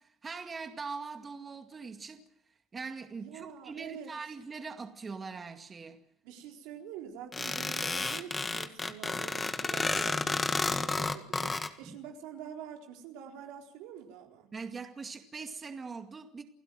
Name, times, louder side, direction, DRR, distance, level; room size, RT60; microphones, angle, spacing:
voice 1, 0.0-2.2 2.7-6.0 11.8-12.0 14.5-16.4, right 4 dB, 25° right, 2.2 m, -42 dB
voice 2, 3.1-4.1 6.2-14.5, right 8 dB, 85° right, 4.0 m, -46 dB
sound 1, 7.3-11.7, left 3 dB, 20° left, 1.8 m, -31 dB
29.0 x 16.0 x 7.7 m
cardioid pair, 120°, 0 cm